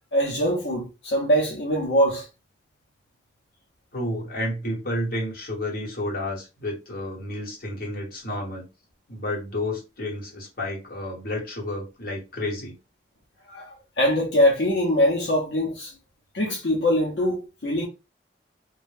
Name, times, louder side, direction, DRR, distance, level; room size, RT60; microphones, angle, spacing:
voice 1, 0.1-2.3 13.5-15.9 16.3-17.9, equal, 80° left, 0.6 m, -23 dB
voice 2, 3.9-8.7 9.1-12.7, left 1 dB, 55° left, 1.0 m, -31 dB
2.2 x 2.0 x 3.1 m
head